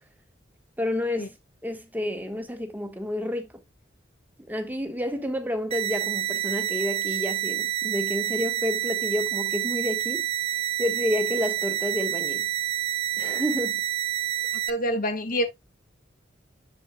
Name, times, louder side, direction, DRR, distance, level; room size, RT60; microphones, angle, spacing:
voice 1, 0.8-1.3 1.6-3.5 4.5-10.3 10.8-12.5 13.2-13.8, left 1 dB, 10° right, 1.2 m, -30 dB
sound 1, 5.7-14.7, right 12 dB, 30° right, 0.5 m, -28 dB
voice 2, 14.7-15.4, equal, 50° left, 1.5 m, -26 dB
8.0 x 7.4 x 2.2 m
head